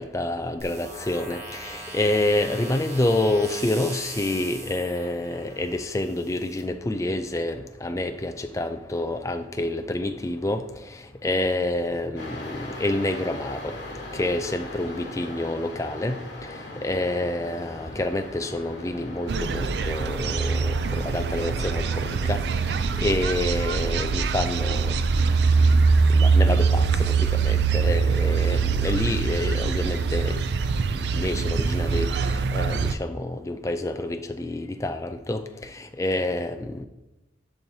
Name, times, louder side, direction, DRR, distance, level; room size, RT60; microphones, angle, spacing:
voice 1, 0.0-10.6 10.9-13.7 14.1-16.2 16.8-22.4 23.0-25.8 26.1-30.4 31.1-36.8, left 1 dB, 15° left, 8 dB, 0.3 m, -28 dB
sound 1, 0.6-6.6, right 2 dB, 35° right, 1.2 m, -40 dB
sound 2, 12.2-23.1, left 1 dB, 60° left, 1.7 m, -40 dB
sound 3, 19.3-33.0, right 5 dB, 60° right, 0.4 m, -23 dB
10.5 x 4.7 x 2.8 m, 1.0 s
head